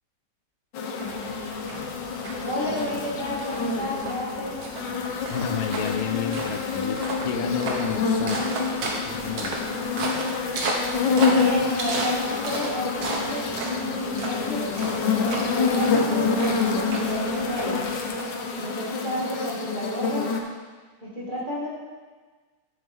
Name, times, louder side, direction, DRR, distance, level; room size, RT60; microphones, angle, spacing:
sound 1, 0.7-20.4, left 5 dB, 65° left, 1.4 m, -27 dB
sound 2, 1.0-18.7, right 2 dB, 55° right, 1.5 m, -35 dB
voice 1, 2.4-4.6 11.3-14.7 15.2-17.9 18.6-20.3 21.0-21.7, equal, 25° right, -7 dB, 2.0 m, -31 dB
voice 2, 5.3-8.4 9.1-9.6, left 7 dB, 85° left, 6 dB, 1.5 m, -30 dB
9.4 x 7.3 x 3.6 m, 1.4 s
omnidirectional pair, 2.2 m